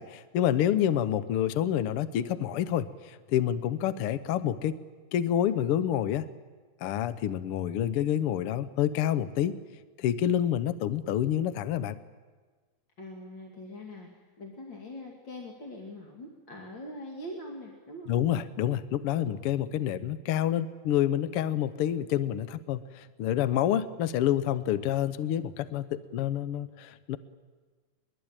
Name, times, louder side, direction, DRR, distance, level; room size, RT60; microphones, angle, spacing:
voice 1, 0.0-4.8 5.1-6.3 6.8-9.5 10.0-12.0 18.1-27.2, left 11 dB, 65° left, 14 dB, 1.5 m, -28 dB
voice 2, 13.0-18.2 19.9-20.1, left 1 dB, 40° left, 0 dB, 3.0 m, -43 dB
23.0 x 22.0 x 8.9 m, 1.4 s
omnidirectional pair, 3.3 m